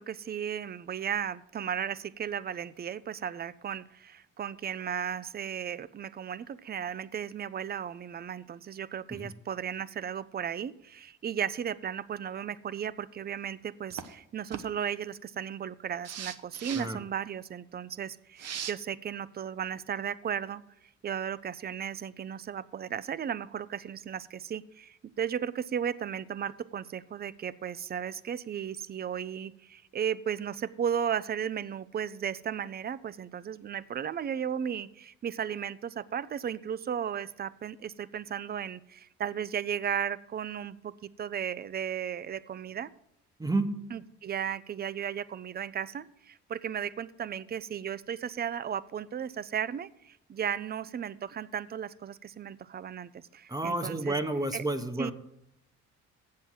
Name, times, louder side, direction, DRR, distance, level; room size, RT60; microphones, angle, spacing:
voice 1, 0.0-20.6 21.0-42.9 43.9-54.2 54.5-54.6 55.0-55.1, right 8 dB, 35° right, 19 dB, 0.4 m, -35 dB
sound 1, 13.9-14.1 14.5-14.6 16.0-16.9 18.4-18.7, right 8 dB, 55° right, 0.7 m, -38 dB
voice 2, 16.7-17.0 43.4-43.7 53.5-55.1, right 2 dB, 10° right, 9 dB, 0.8 m, -30 dB
7.8 x 7.5 x 6.1 m, 0.77 s
cardioid pair, 90°, 30 cm